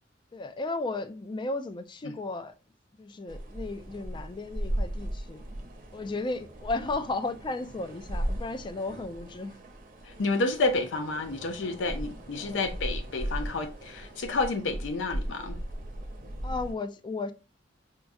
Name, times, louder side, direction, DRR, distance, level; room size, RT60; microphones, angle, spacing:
voice 1, 0.3-2.5 3.0-5.4 5.9-9.6 12.4-12.6 16.4-17.3, left 3 dB, 25° left, 0.3 m, -34 dB
sound 1, 3.3-16.7, right 1 dB, 50° right, 0.7 m, -37 dB
voice 2, 10.0-15.6, left 3 dB, 80° left, 0.5 m, -30 dB
4.4 x 2.3 x 2.5 m
head